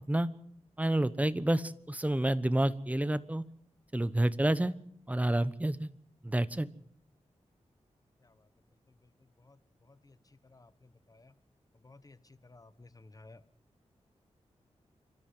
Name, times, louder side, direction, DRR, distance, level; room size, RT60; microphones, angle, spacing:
voice 1, 0.8-3.4 3.9-4.7 5.1-5.9 6.2-6.7, right 1 dB, 10° right, 15 dB, 1.1 m, -29 dB
voice 2, 11.8-12.2 12.4-13.4, left 2 dB, 30° left, 14 dB, 1.3 m, -55 dB
27.5 x 12.5 x 7.8 m, 0.69 s
wide cardioid pair, 70°, 12 cm